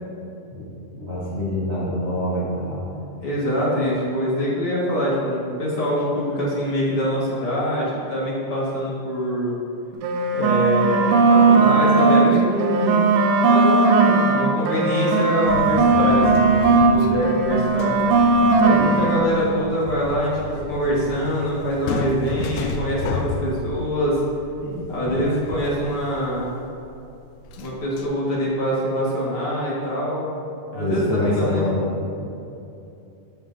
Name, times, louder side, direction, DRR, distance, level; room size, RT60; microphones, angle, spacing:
voice 1, 0.9-2.9 24.6-25.2 30.7-32.2, left 1 dB, 60° right, -9 dB, 0.7 m, -26 dB
voice 2, 2.8-9.5 10.3-13.0 13.5-18.0 18.6-20.4 20.7-24.2 24.9-26.5 27.6-30.4 30.7-31.6, equal, 50° left, -7 dB, 2.0 m, -24 dB
sound 1, 9.9-12.3 12.6-17.0 17.2-19.3, right 3 dB, 90° right, 2.3 m, -17 dB
sound 2, 15.5-28.1, left 3 dB, 85° left, 1.6 m, -33 dB
13.5 x 5.4 x 2.6 m, 2.6 s
omnidirectional pair, 3.7 m